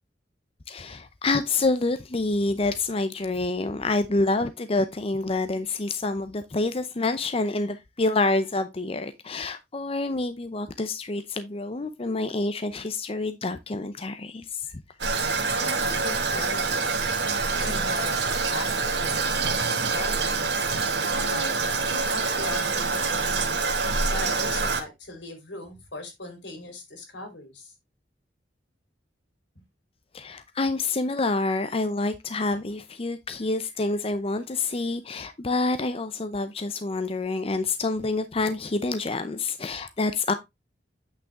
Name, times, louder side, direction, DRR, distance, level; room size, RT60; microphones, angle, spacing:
voice 1, 0.7-14.7 30.1-40.3, left 3 dB, 35° left, 0.6 m, -27 dB
Toilet flush, 15.0-24.8, right 4 dB, 75° right, 1.7 m, -26 dB
voice 2, 15.5-17.0 17.6-20.4 21.1-21.5 21.8-23.6 24.1-27.7, left 2 dB, 80° left, 3.4 m, -38 dB
8.9 x 5.7 x 3.5 m
head